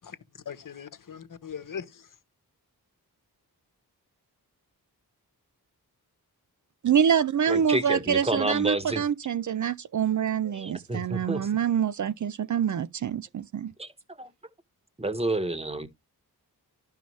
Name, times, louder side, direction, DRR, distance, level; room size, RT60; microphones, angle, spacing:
voice 1, 0.0-2.2, left 7 dB, 55° left, 1.1 m, -40 dB
voice 2, 6.8-13.7, right 8 dB, 50° right, 0.5 m, -26 dB
voice 3, 7.5-9.0 10.5-11.5 13.8-14.3 15.0-15.9, right 2 dB, 15° right, 1.1 m, -29 dB
11.5 x 5.5 x 3.1 m
cardioid pair, 75°, 39 cm